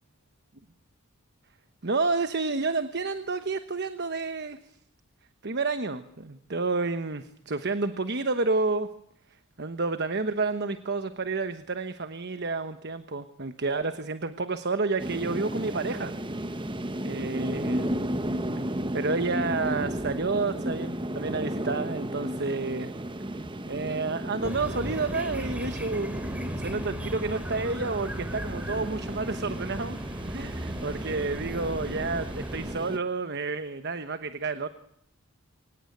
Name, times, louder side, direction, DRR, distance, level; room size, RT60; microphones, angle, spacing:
voice 1, 1.8-4.6 5.4-8.9 9.6-16.2 17.0-18.0 18.9-22.9 23.7-26.2 26.5-30.0 30.3-34.7, right 3 dB, 50° right, 10 dB, 1.1 m, -30 dB
sound 1, 15.0-33.0, right 1 dB, 20° right, 1.0 m, -34 dB
sound 2, 24.4-32.7, equal, 5° right, 3.2 m, -38 dB
24.5 x 18.0 x 9.3 m, 0.75 s
head